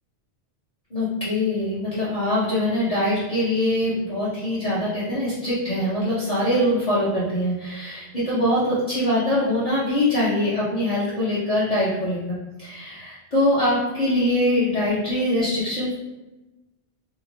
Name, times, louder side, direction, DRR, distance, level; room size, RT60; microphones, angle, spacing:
voice 1, 0.9-15.9, left 1 dB, 35° left, -11 dB, 0.8 m, -23 dB
2.8 x 2.3 x 2.9 m, 1.1 s
omnidirectional pair, 1.2 m